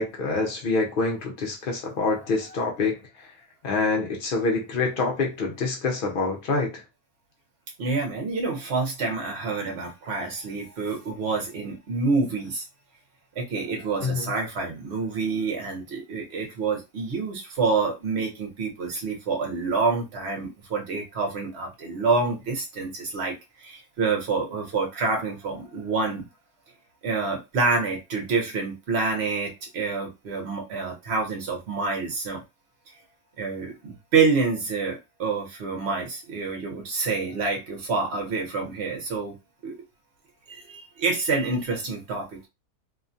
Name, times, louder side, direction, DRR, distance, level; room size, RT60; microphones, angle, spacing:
voice 1, 0.0-3.0 3.6-6.8 14.0-14.3, left 3 dB, 60° left, 0.5 m, -26 dB
voice 2, 7.8-12.6 13.3-26.3 27.0-32.4 33.4-39.3 39.6-39.8 40.5-42.5, right 4 dB, 50° right, 1.0 m, -27 dB
2.8 x 2.3 x 2.6 m
omnidirectional pair, 1.6 m